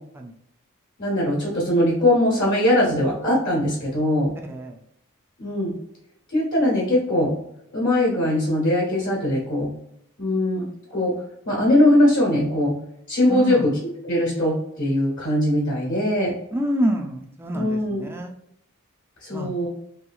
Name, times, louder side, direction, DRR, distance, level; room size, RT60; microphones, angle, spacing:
voice 1, 1.0-4.3 5.4-5.7 6.3-7.3 7.7-9.7 10.2-10.6 10.9-11.1 11.4-12.7 13.1-13.7 14.0-16.3 17.5-18.0 19.2-19.7, left 1 dB, 55° left, -4 dB, 1.2 m, -21 dB
voice 2, 4.5-4.8 13.3-13.7 16.5-18.3 19.3-19.5, equal, 10° right, 2 dB, 0.3 m, -27 dB
3.1 x 2.7 x 2.3 m, 0.76 s
head